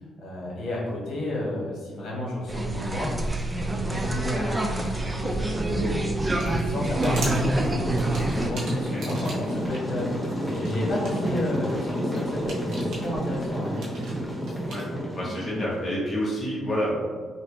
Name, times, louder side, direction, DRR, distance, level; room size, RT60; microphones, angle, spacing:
voice 1, 0.2-5.9 6.3-10.1 10.5-13.7, left 1 dB, 65° left, -5 dB, 1.3 m, -32 dB
sound 1, 2.5-8.5, right 2 dB, 15° right, 0.4 m, -27 dB
sound 2, 6.2-9.8 10.2-14.9, right 2 dB, 80° right, 0.9 m, -40 dB
sound 3, 6.7-15.8, equal, ahead, 0.7 m, -30 dB
voice 2, 15.1-16.9, equal, 25° left, -7 dB, 1.4 m, -28 dB
3.2 x 2.7 x 3.0 m, 1.5 s
cardioid pair, 90°, 0 cm